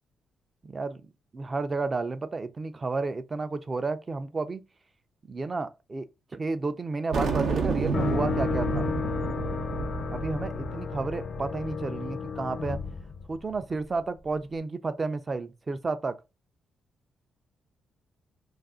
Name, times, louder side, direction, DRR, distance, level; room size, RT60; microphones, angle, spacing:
voice 1, 0.6-1.0 1.3-4.6 5.3-6.1 6.3-8.9 10.1-12.8 13.3-16.2, right 3 dB, 35° right, 0.4 m, -31 dB
sound 1, 7.1-11.8, right 4 dB, 85° right, 0.7 m, -31 dB
sound 2, 7.9-13.8, left 6 dB, 55° left, 0.4 m, -33 dB
2.5 x 2.4 x 3.6 m
cardioid pair, 85°, 0 cm